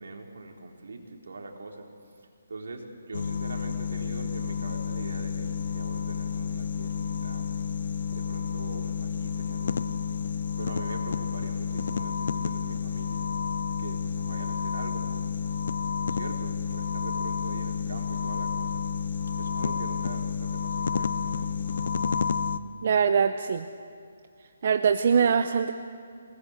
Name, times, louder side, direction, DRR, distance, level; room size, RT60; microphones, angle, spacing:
voice 1, 0.0-1.9 2.5-7.5 8.1-9.9 10.6-13.3 13.7-15.3 16.0-18.8 19.4-21.5, right 2 dB, 75° right, 1 dB, 3.9 m, -42 dB
sound 1, 3.1-22.6, left 6 dB, 60° left, 0.8 m, -30 dB
voice 2, 22.8-23.6 24.6-25.7, right 6 dB, 45° right, 9 dB, 0.8 m, -22 dB
23.5 x 19.5 x 8.2 m, 2.3 s
hypercardioid pair, 165°, 0 cm